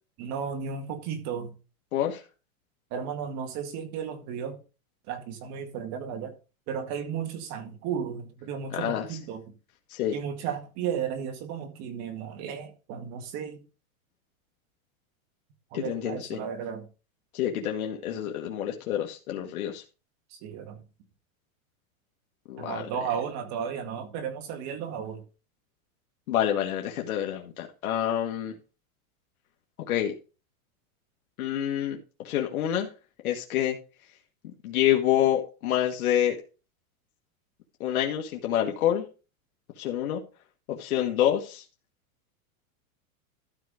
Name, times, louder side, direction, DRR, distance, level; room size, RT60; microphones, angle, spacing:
voice 1, 0.2-1.5 2.9-4.6 5.1-6.3 6.7-9.4 10.1-13.6 15.7-16.9 20.3-20.8 22.6-25.2, right 7 dB, 40° right, 1.9 m, -34 dB
voice 2, 8.7-9.1 9.9-10.1 15.7-16.4 17.3-19.8 22.5-22.8 26.3-28.5 29.9-30.1 31.4-32.0 32.2-32.9 33.2-33.8 34.6-36.4 37.8-39.1 39.8-40.2 40.7-41.6, left 11 dB, 85° left, 1.7 m, -27 dB
13.0 x 4.7 x 5.1 m
supercardioid pair, 150°, 42 cm